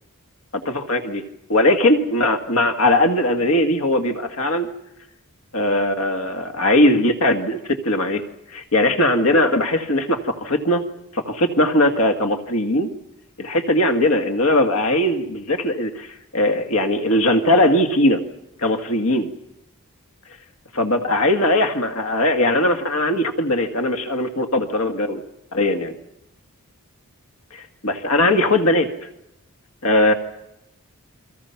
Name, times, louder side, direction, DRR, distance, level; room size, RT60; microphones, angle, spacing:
voice 1, 0.5-1.2 1.5-4.7 5.5-8.2 8.5-10.8 11.1-12.9 13.4-16.1 16.3-18.2 18.6-19.3 20.7-25.2 25.5-26.0 27.5-28.9 29.8-30.1, left 1 dB, 75° left, 6 dB, 2.0 m, -19 dB
29.5 x 24.0 x 5.9 m, 0.86 s
head